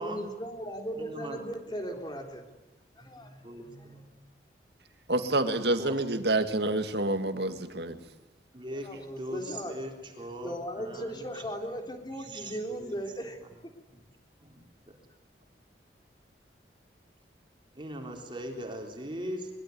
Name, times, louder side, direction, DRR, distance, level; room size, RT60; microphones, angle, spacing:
voice 1, 0.0-2.4 3.0-4.1 8.7-9.8 10.3-13.4, equal, 25° left, 4 dB, 3.5 m, -38 dB
voice 2, 0.9-1.4 3.4-4.0 5.8-6.0 8.5-8.9 9.2-11.4 12.2-13.0 13.9-14.0 14.4-15.0 17.7-19.5, equal, 25° right, 2 dB, 3.9 m, -40 dB
voice 3, 5.1-8.0, right 2 dB, 65° right, 8 dB, 2.2 m, -28 dB
24.0 x 22.5 x 9.6 m, 1.0 s
head